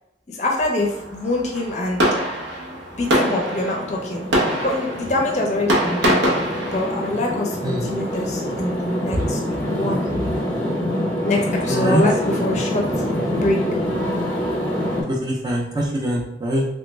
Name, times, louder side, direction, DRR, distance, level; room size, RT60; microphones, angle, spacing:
voice 1, 0.3-2.0 3.0-4.3 4.6-6.2 6.7-10.1 11.2-12.8 13.3-13.6, left 2 dB, 40° left, 0 dB, 0.5 m, -24 dB
Fireworks, 0.8-10.1, equal, 85° right, 0.8 m, -26 dB
sound 1, 2.9-15.0, equal, 10° left, 0.7 m, -26 dB
voice 2, 11.7-12.0 15.1-16.7, right 1 dB, 20° right, -1 dB, 0.4 m, -23 dB
3.2 x 2.1 x 3.1 m, 0.87 s
head